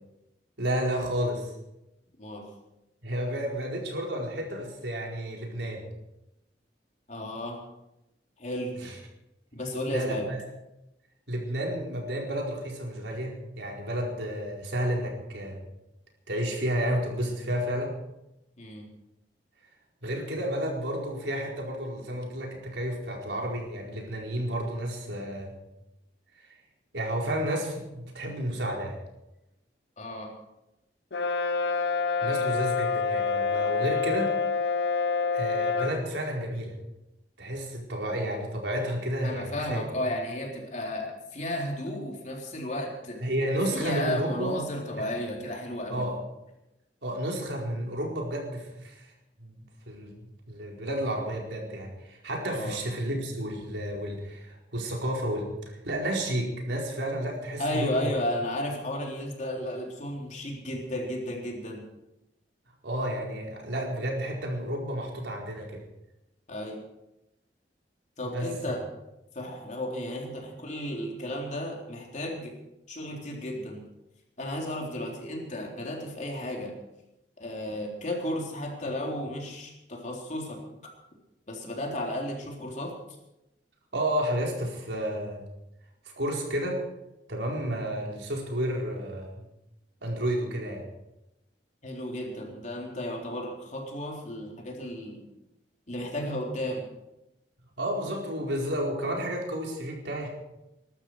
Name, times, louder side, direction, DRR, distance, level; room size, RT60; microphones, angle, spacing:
voice 1, 0.6-1.5 3.0-5.8 8.8-8.9 9.9-10.4 11.3-15.6 16.3-17.9 20.0-25.5 26.9-29.0 32.2-34.3 35.3-36.7 37.4-39.9 43.2-44.6 45.0-45.1 45.9-46.1 47.0-49.1 49.4-55.5 55.8-58.1 62.8-65.8 68.3-68.5 83.9-85.4 86.0-86.8 87.3-89.4 90.0-90.8 97.8-100.3, equal, 80° right, -1 dB, 4.6 m, -31 dB
voice 2, 7.1-7.6 8.4-8.7 9.5-10.3 18.6-18.9 30.0-30.3 39.2-43.2 43.7-46.1 52.5-52.8 57.6-61.8 66.5-66.8 68.2-68.9 69.3-72.5 72.9-73.9 74.4-76.8 77.4-80.6 81.5-82.9 91.8-95.2 95.9-96.8, left 1 dB, 45° left, 0 dB, 3.7 m, -33 dB
Brass instrument, 31.1-36.0, left 5 dB, 70° left, 1.1 m, -27 dB
21.5 x 12.5 x 4.9 m, 0.91 s
head